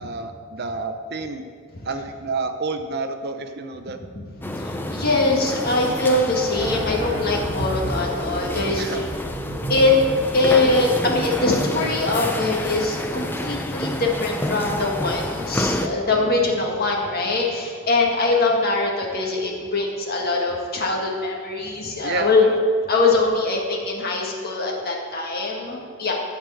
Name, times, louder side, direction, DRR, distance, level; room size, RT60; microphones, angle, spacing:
voice 1, 0.0-1.4 1.8-4.0 8.8-9.1 22.0-22.5, right 3 dB, 50° right, 7 dB, 0.7 m, -29 dB
voice 2, 4.2-9.1 9.6-9.9 10.3-22.4 22.9-26.1, left 2 dB, 45° left, -1 dB, 1.8 m, -22 dB
sound 1, 4.4-15.9, left 1 dB, 10° left, 0.5 m, -29 dB
sound 2, 6.5-11.8, right 1 dB, 15° right, 2.1 m, -33 dB
13.5 x 4.8 x 7.7 m, 2.1 s
head